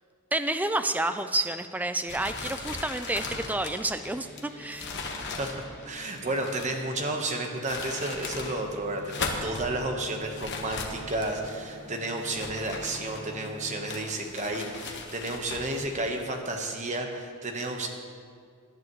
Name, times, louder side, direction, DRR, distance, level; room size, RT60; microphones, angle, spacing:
voice 1, 0.3-5.0, right 2 dB, 5° right, 9 dB, 0.4 m, -29 dB
sound 1, 2.1-6.8 7.4-8.6 8.9-9.7 10.3-11.5 12.1-13.4 13.9-15.9, left 4 dB, 50° left, 1.3 m, -38 dB
sound 2, 3.9-13.9, equal, 10° left, 1.7 m, -48 dB
voice 2, 5.2-5.6 5.8-17.9, right 2 dB, 35° right, 3 dB, 1.2 m, -32 dB
sound 3, 11.1-16.2, equal, 55° right, 3.1 m, -51 dB
18.5 x 11.0 x 3.1 m, 2.1 s
head